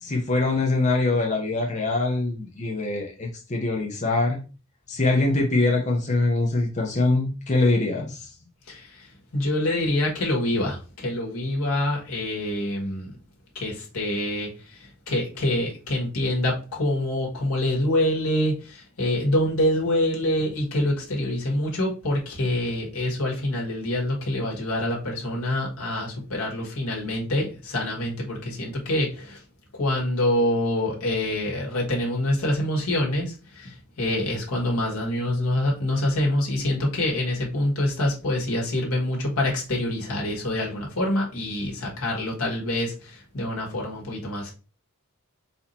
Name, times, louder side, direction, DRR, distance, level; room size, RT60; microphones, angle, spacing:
voice 1, 0.0-4.4 4.9-8.3, left 2 dB, 35° left, 0.7 m, -23 dB
voice 2, 8.7-13.1 13.5-29.4 29.8-44.5, left 1 dB, 85° left, 1.6 m, -26 dB
4.2 x 2.8 x 4.1 m
head